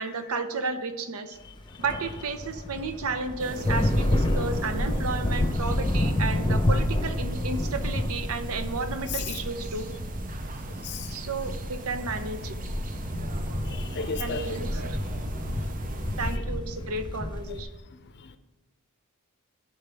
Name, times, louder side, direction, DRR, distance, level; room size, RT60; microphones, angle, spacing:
voice 1, 0.0-1.4 1.8-9.9 11.1-12.5 14.2-15.0 16.2-17.7, right 3 dB, 70° right, 0.8 m, -32 dB
sound 1, 1.6-17.6, left 1 dB, 20° left, 0.8 m, -30 dB
sound 2, 3.4-16.4, right 2 dB, 40° right, 0.6 m, -37 dB
voice 2, 13.7-14.6 16.2-16.4, left 5 dB, 50° left, 0.7 m, -34 dB
15.0 x 5.7 x 3.5 m
head